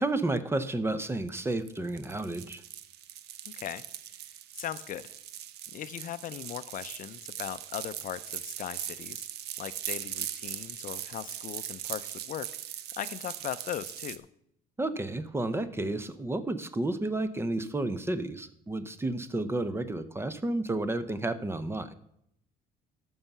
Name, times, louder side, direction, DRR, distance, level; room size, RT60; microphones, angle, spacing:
voice 1, 0.0-2.6 14.8-21.9, right 2 dB, 15° right, 13 dB, 0.7 m, -31 dB
sound 1, 1.3-14.2, right 11 dB, 75° right, 0.7 m, -40 dB
voice 2, 4.5-5.1 5.7-9.3 9.6-12.5 13.0-14.3, left 11 dB, 50° left, 14 dB, 0.5 m, -38 dB
13.5 x 5.5 x 5.9 m, 0.74 s
cardioid pair, 110°, 17 cm